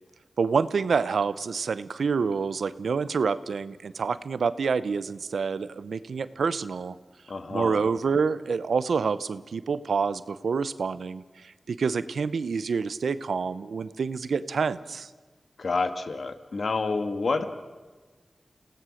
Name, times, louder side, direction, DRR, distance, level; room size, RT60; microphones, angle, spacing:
voice 1, 0.4-7.0 7.5-15.1, right 5 dB, 90° right, 14 dB, 0.7 m, -27 dB
voice 2, 7.3-7.8 15.6-17.4, left 3 dB, 75° left, 8 dB, 1.7 m, -28 dB
29.0 x 17.5 x 6.5 m, 1.3 s
cardioid pair, 45°, 0 cm